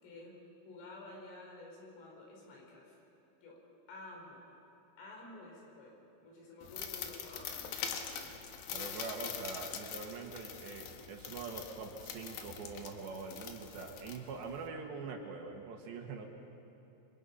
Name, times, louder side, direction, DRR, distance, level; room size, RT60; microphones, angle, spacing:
voice 1, 0.0-3.0 3.4-4.5 5.0-8.3, left 2 dB, 85° left, -1 dB, 6.8 m, -51 dB
sound 1, 6.6-14.7, left 7 dB, 65° left, 2.5 m, -44 dB
voice 2, 8.7-16.3, right 4 dB, 70° right, 2 dB, 3.6 m, -44 dB
28.0 x 24.0 x 5.6 m, 2.9 s
omnidirectional pair, 5.6 m